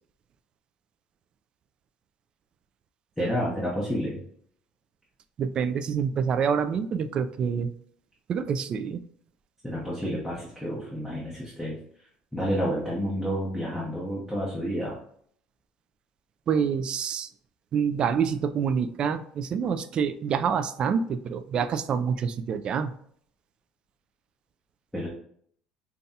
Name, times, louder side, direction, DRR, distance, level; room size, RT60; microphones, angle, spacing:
voice 1, 3.2-4.2 9.6-11.8 12.3-15.0 24.9-25.1, equal, 5° left, -5 dB, 1.0 m, -30 dB
voice 2, 5.4-7.7 8.3-9.0 16.5-17.3 17.7-22.9, right 7 dB, 40° right, 9 dB, 0.3 m, -27 dB
5.3 x 2.3 x 2.7 m, 0.62 s
cardioid pair, 115°, 2 cm